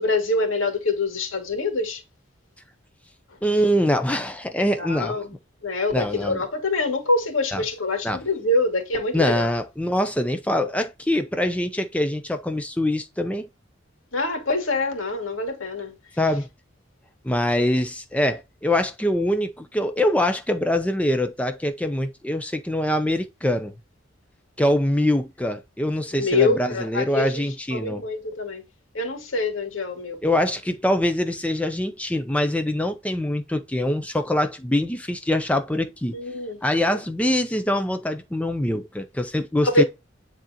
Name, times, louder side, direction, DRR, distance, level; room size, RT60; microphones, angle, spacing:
voice 1, 0.0-2.0 4.8-5.3 5.6-9.5 14.1-15.9 26.1-27.4 27.7-28.6 28.9-30.4 36.1-36.6 39.6-39.8, left 2 dB, 90° left, 2.4 m, -25 dB
voice 2, 3.4-5.2 5.9-6.4 7.5-7.6 8.0-8.2 9.1-13.5 16.2-16.5 17.2-23.7 24.6-28.0 30.2-36.2 36.6-39.8, left 1 dB, 5° left, 0.5 m, -24 dB
9.8 x 3.8 x 2.9 m
head